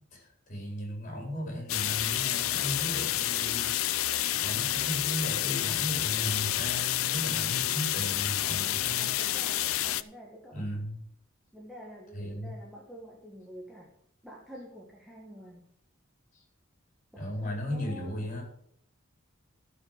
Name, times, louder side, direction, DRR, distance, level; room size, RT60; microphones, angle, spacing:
voice 1, 0.1-9.1 10.5-11.0 12.1-12.5 16.3-16.4 17.2-18.4, equal, 35° left, 0 dB, 4.5 m, -36 dB
sound 1, 1.7-10.0, left 14 dB, 85° left, 0.6 m, -29 dB
voice 2, 8.4-10.7 11.5-13.9 14.2-15.7 17.1-18.3, equal, ahead, -3 dB, 1.7 m, -47 dB
13.0 x 5.8 x 7.6 m, 0.67 s
head